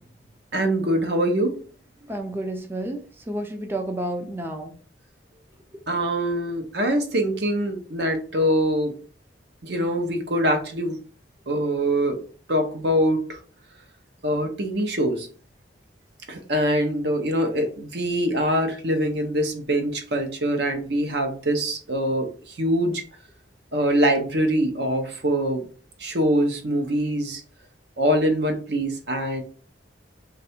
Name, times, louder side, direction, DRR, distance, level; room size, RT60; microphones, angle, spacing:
voice 1, 0.5-1.6 5.9-8.9 9.6-11.0 11.5-12.2 12.5-13.4 14.2-15.3 16.3-23.0 23.7-25.6 26.0-27.4 28.0-29.4, equal, 60° right, 5 dB, 0.8 m, -23 dB
voice 2, 2.1-3.0 3.3-4.7, right 1 dB, 10° right, 3 dB, 0.4 m, -30 dB
3.3 x 2.5 x 4.2 m, 0.42 s
head